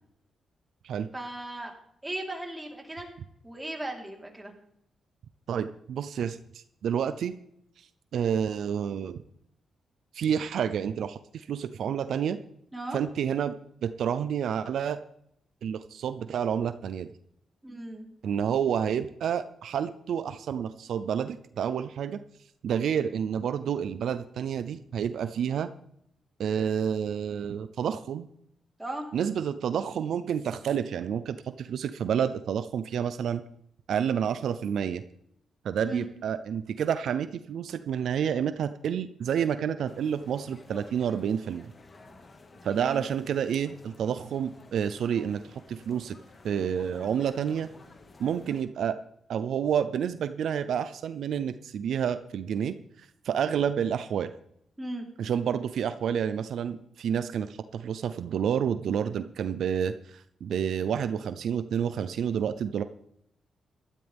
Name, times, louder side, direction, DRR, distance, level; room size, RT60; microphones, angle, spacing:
voice 1, 1.1-1.7 2.0-3.1 3.4-4.5 12.7-13.0 17.6-18.1 28.8-29.1 35.8-36.1 42.8-43.1 54.8-55.0, right 1 dB, 15° right, 0 dB, 3.9 m, -37 dB
voice 2, 5.5-7.3 7.8-9.2 10.1-12.4 12.9-13.6 13.8-15.0 15.6-17.1 18.2-22.2 22.6-25.7 26.4-28.3 29.1-33.4 33.9-35.0 35.6-41.7 42.6-46.2 46.4-47.7 48.2-49.0 49.3-54.3 55.2-62.8, right 8 dB, 75° right, 12 dB, 0.6 m, -29 dB
sound 1, 39.9-48.6, left 3 dB, 40° left, 1.9 m, -52 dB
15.5 x 13.0 x 3.6 m, 0.72 s
cardioid pair, 75°, 0 cm